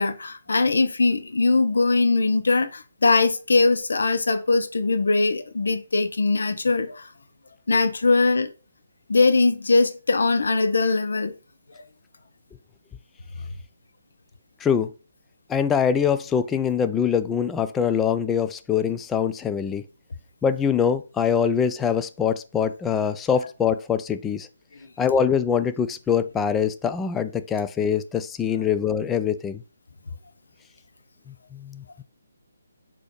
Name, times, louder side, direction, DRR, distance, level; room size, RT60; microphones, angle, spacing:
voice 1, 0.0-7.1 7.7-8.5 9.1-11.3, left 3 dB, 65° left, 0.7 m, -21 dB
voice 2, 14.6-14.9 15.5-19.8 20.4-24.5 25.0-29.6 31.3-32.0, left 7 dB, 10° left, 0.3 m, -24 dB
4.0 x 2.8 x 4.7 m
figure-of-eight pair, 145°, 0 cm